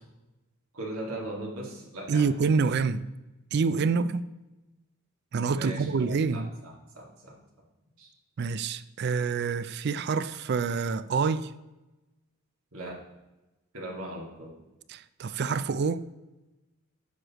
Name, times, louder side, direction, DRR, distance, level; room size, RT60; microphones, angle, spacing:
voice 1, 0.7-2.4 5.5-7.4 8.0-8.1 12.7-13.0 13.7-14.5, right 1 dB, 80° right, 2.0 m, -39 dB
voice 2, 2.1-3.0 3.5-4.3 5.3-6.5 8.4-11.5 14.9-16.0, right 5 dB, 50° right, 0.3 m, -27 dB
9.4 x 6.4 x 3.0 m
head